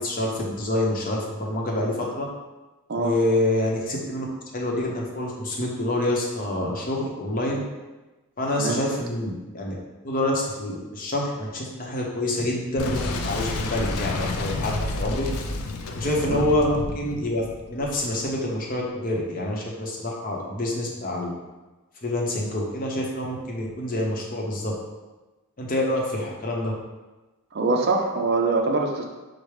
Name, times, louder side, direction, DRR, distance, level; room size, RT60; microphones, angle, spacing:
voice 1, 0.0-2.3 2.9-4.3 4.5-7.6 8.4-9.7 10.0-15.3 15.9-21.3 22.0-24.7 25.6-26.7, left 1 dB, 40° left, -2 dB, 0.8 m, -27 dB
Boom, 12.8-18.3, left 2 dB, 85° left, 0.5 m, -30 dB
voice 2, 27.5-29.0, right 3 dB, 50° right, 2 dB, 0.5 m, -24 dB
4.8 x 2.1 x 4.7 m, 1.1 s
head